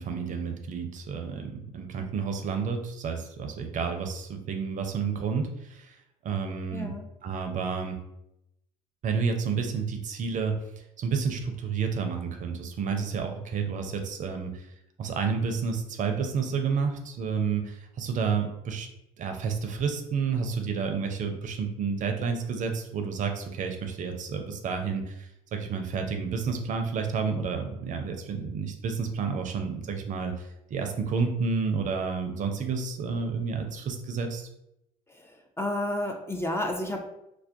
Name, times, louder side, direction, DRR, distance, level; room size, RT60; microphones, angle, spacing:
voice 1, 0.0-6.0 6.2-7.0 7.2-8.0 9.0-10.5 11.0-14.7 15.0-18.9 19.2-34.5, right 5 dB, 45° right, 5 dB, 0.4 m, -30 dB
voice 2, 6.7-7.1 35.1-37.0, left 1 dB, 15° left, 3 dB, 0.3 m, -31 dB
2.2 x 2.1 x 2.6 m, 0.83 s
hypercardioid pair, 65°, 18 cm